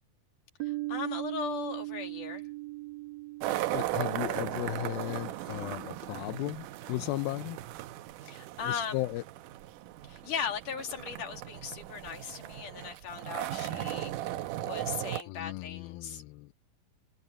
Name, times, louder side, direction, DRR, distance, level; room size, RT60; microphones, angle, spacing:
voice 1, 0.6-2.5 8.2-9.1 10.0-16.2, left 7 dB, 60° left, 4.2 m, -38 dB
Piano, 0.6-6.0, right 21 dB, 55° right, 2.9 m, -40 dB
sound 1, 3.4-15.2, right 14 dB, 75° right, 2.2 m, -37 dB
voice 2, 3.7-7.6 8.6-9.2 15.3-16.5, left 18 dB, 85° left, 2.4 m, -35 dB
omnidirectional pair, 4.2 m